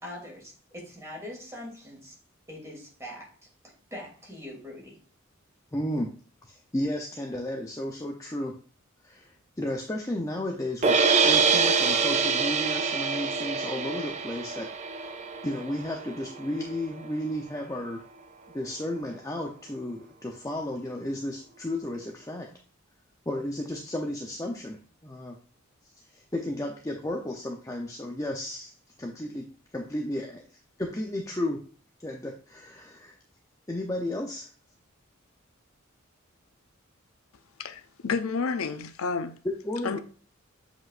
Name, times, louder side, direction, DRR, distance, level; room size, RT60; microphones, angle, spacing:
voice 1, 0.0-2.2 2.5-3.3 3.9-5.0, left 1 dB, 15° right, 2.8 m, -42 dB
voice 2, 5.7-6.1 6.4-8.6 9.0-15.1 15.4-18.0 18.5-22.5 23.3-25.4 26.1-28.7 29.0-29.5 29.7-30.4 30.8-31.6 32.0-33.1 33.7-34.5 39.4-40.0, left 1 dB, 15° left, 0.6 m, -33 dB
sound 1, 10.8-17.0, right 5 dB, 35° right, 0.5 m, -25 dB
voice 3, 37.6-39.4 39.8-40.0, left 5 dB, 90° left, 0.6 m, -30 dB
7.9 x 5.1 x 2.5 m
head